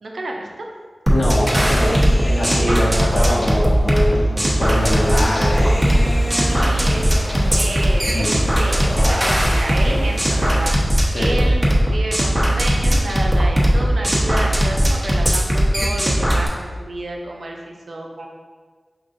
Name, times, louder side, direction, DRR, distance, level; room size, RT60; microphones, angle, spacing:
voice 1, 0.0-0.7 2.7-2.8 6.4-7.1 7.6-18.3, right 2 dB, 90° right, 0 dB, 0.5 m, -30 dB
voice 2, 1.1-5.8 8.1-8.4 11.1-11.4, left 1 dB, 75° left, -3 dB, 0.9 m, -23 dB
sound 1, 1.1-16.5, equal, 20° right, 1.1 m, -18 dB
Human voice, 1.5-4.2 4.4-7.9 8.3-9.4, left 1 dB, 30° left, 0.7 m, -29 dB
sound 2, 4.6-10.7, left 1 dB, 90° left, 0.5 m, -34 dB
5.0 x 2.5 x 3.8 m, 1.5 s
cardioid pair, 40°, 0 cm